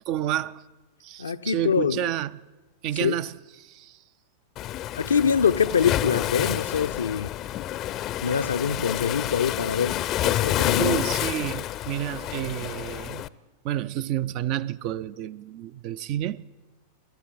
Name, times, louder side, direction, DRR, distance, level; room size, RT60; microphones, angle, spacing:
voice 1, 0.1-0.6 1.0-2.4 2.8-4.0 10.8-13.2 13.6-16.4, right 12 dB, 45° right, 0.6 m, -30 dB
voice 2, 1.2-2.0 3.0-3.2 4.9-7.3 8.2-11.0, left 7 dB, 70° left, 0.7 m, -24 dB
Waves surf, 4.6-13.3, left 13 dB, 35° left, 0.7 m, -29 dB
26.0 x 13.0 x 9.2 m
figure-of-eight pair, 90°, 0 cm